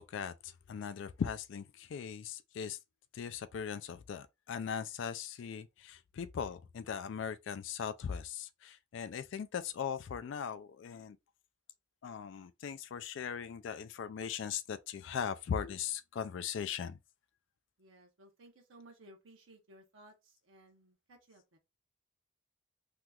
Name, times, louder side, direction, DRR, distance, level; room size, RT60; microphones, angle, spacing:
voice 1, 0.0-2.8 3.1-11.2 12.0-17.0, left 7 dB, 75° left, 0.3 m, -39 dB
voice 2, 17.8-21.6, right 1 dB, 85° right, 0.8 m, -59 dB
2.9 x 2.3 x 3.4 m
head